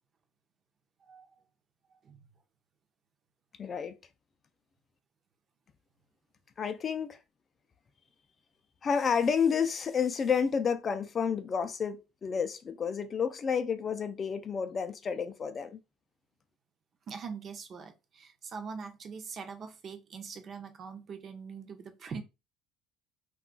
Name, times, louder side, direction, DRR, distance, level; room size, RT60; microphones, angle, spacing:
voice 1, 3.6-3.9 6.6-7.2 8.8-15.8, left 6 dB, 30° left, 0.3 m, -30 dB
voice 2, 17.1-22.2, right 5 dB, 40° right, 0.6 m, -42 dB
2.3 x 2.3 x 3.7 m
cardioid pair, 125°, 0 cm